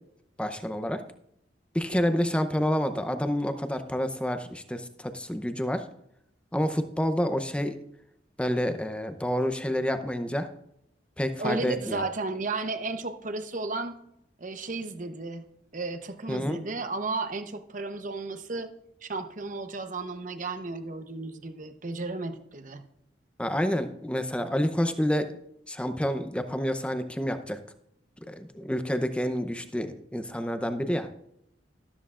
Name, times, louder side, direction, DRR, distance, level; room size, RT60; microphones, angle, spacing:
voice 1, 0.4-1.0 1.7-5.8 6.5-7.8 8.4-10.5 11.2-12.0 16.3-16.6 23.4-25.4 25.7-27.6 28.3-31.1, equal, 5° left, 9 dB, 0.7 m, -28 dB
voice 2, 11.4-14.0 14.4-15.4 15.7-18.7 19.0-22.8, right 3 dB, 45° right, 8 dB, 0.9 m, -33 dB
13.0 x 12.5 x 2.5 m, 0.77 s
head